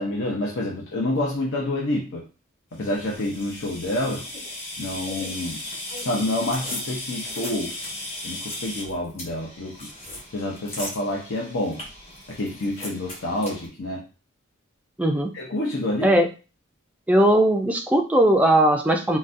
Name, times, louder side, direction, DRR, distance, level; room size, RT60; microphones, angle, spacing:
voice 1, 0.0-2.2 2.7-4.2 4.8-5.6 6.0-7.8 8.2-9.9 10.3-11.8 12.3-14.1 15.3-16.1, left 1 dB, 65° left, -2 dB, 0.6 m, -28 dB
sound 1, 2.8-13.7, left 1 dB, 30° left, 1.0 m, -36 dB
voice 2, 15.0-15.3 16.0-16.3 17.1-19.2, right 1 dB, 5° right, 3 dB, 0.3 m, -18 dB
3.8 x 2.2 x 2.5 m, 0.32 s
head